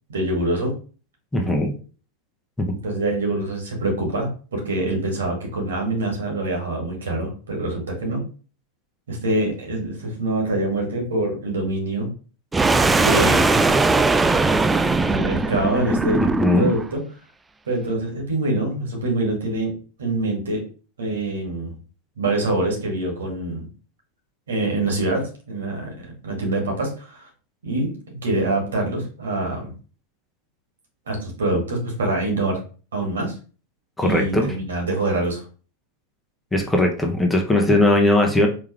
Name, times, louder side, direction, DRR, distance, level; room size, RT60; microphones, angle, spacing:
voice 1, 0.1-0.8 2.8-8.2 9.1-12.1 13.0-13.7 15.1-16.2 16.6-17.0 17.7-20.6 21.0-21.7 22.2-23.6 24.5-27.3 27.6-27.9 28.2-29.7 31.1-32.6 32.9-33.3 34.0-35.4, right 2 dB, 70° right, 0 dB, 1.9 m, -25 dB
voice 2, 1.3-1.7 2.6-2.7 16.4-16.7 34.0-34.5 36.5-38.5, left 1 dB, 10° left, 1 dB, 1.1 m, -19 dB
sound 1, 12.5-16.8, right 3 dB, 10° right, 0.3 m, -19 dB
4.7 x 3.5 x 3.2 m, 0.38 s
figure-of-eight pair, 90°, 0 cm